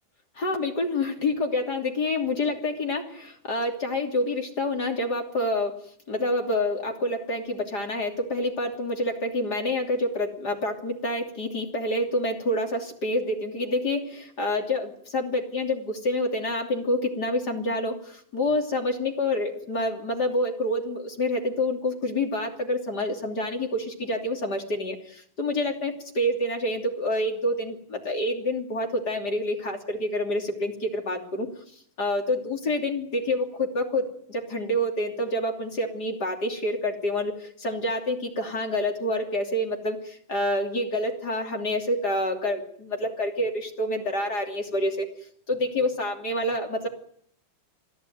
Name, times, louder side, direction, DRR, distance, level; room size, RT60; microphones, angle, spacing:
voice 1, 0.4-5.8 6.1-31.5 32.0-45.1 45.5-46.9, left 1 dB, 30° left, 3 dB, 3.0 m, -27 dB
26.5 x 16.5 x 9.4 m, 0.64 s
omnidirectional pair, 4.4 m